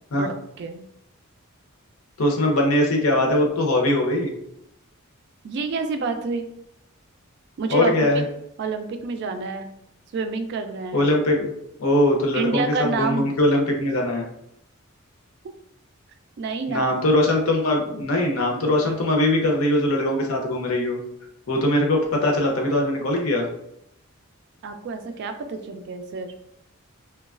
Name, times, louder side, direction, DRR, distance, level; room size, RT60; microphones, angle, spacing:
voice 1, 0.1-0.8 5.4-6.5 7.6-7.9 8.6-9.7 10.1-11.0 12.3-13.2 16.4-16.9 24.6-26.3, right 4 dB, 50° right, 7 dB, 0.3 m, -28 dB
voice 2, 2.2-4.3 7.7-8.2 10.9-11.5 11.8-12.6 12.9-14.2 16.7-21.0 21.5-23.5, left 1 dB, 75° left, 1 dB, 0.7 m, -21 dB
3.0 x 2.2 x 2.3 m, 0.78 s
head